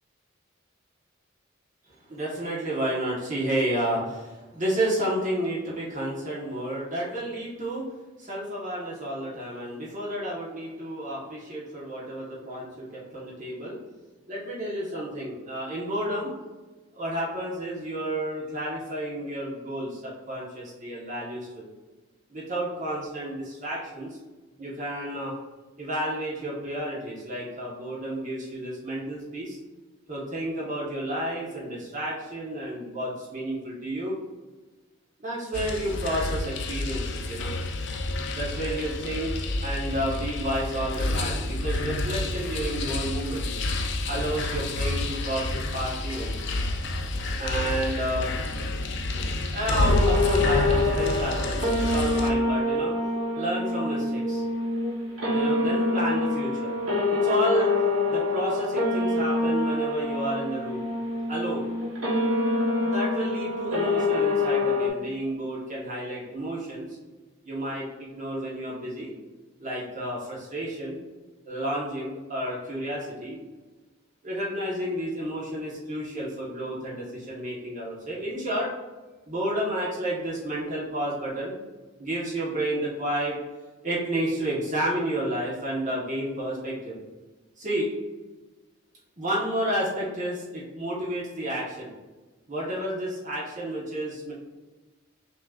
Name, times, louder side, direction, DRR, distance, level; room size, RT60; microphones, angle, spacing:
voice 1, 2.1-7.8 8.2-13.8 14.3-16.3 16.9-21.7 22.3-24.2 24.6-25.3 25.8-29.6 30.1-34.2 35.2-37.5 38.3-39.4 39.6-43.4 44.1-46.4 47.4-48.3 49.5-52.9 53.3-54.4 55.3-56.7 57.2-57.7 58.1-60.9 61.3-61.7 62.8-66.9 67.4-69.1 69.6-71.0 71.5-73.4 74.2-78.7 79.3-81.5 82.0-83.4 83.8-87.0 87.6-87.9 89.2-91.9 92.5-94.3, right 1 dB, 40° right, -5 dB, 1.3 m, -31 dB
sound 1, 35.5-52.3, left 2 dB, 60° left, 0.5 m, -29 dB
sound 2, 49.7-64.9, left 2 dB, 90° right, 1.2 m, -26 dB
6.1 x 3.2 x 2.5 m, 1.2 s
head